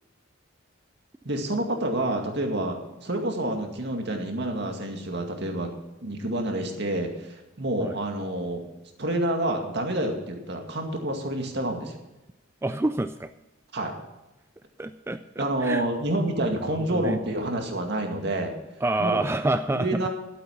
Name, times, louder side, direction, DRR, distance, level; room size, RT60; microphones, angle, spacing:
voice 1, 1.2-5.7 6.0-8.6 9.0-12.0 13.7-14.0 15.4-18.5 19.0-19.3 19.7-20.1, right 1 dB, 60° right, 3 dB, 2.2 m, -28 dB
voice 2, 12.6-13.3 14.8-15.8 16.7-17.2 18.8-19.9, right 2 dB, 15° right, 9 dB, 0.3 m, -27 dB
12.0 x 8.6 x 5.9 m, 1.0 s
head